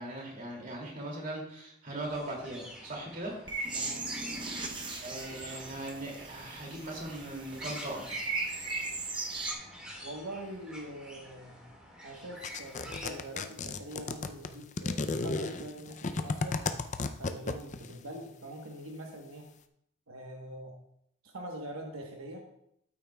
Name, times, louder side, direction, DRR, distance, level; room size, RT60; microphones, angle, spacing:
voice 1, 0.0-3.4 5.0-8.2, right 1 dB, 40° right, -2 dB, 2.5 m, -39 dB
sound 1, 2.0-13.2, equal, 5° right, 1.9 m, -48 dB
sound 2, 3.5-9.5, right 3 dB, 20° right, 0.7 m, -38 dB
voice 2, 3.7-4.1 10.0-11.6 12.0-16.6 17.2-19.5 20.1-20.8 21.2-22.4, right 1 dB, 85° right, 1 dB, 1.2 m, -43 dB
sound 3, 12.4-17.9, left 3 dB, 35° left, 0.4 m, -33 dB
12.5 x 8.8 x 2.3 m, 0.75 s
head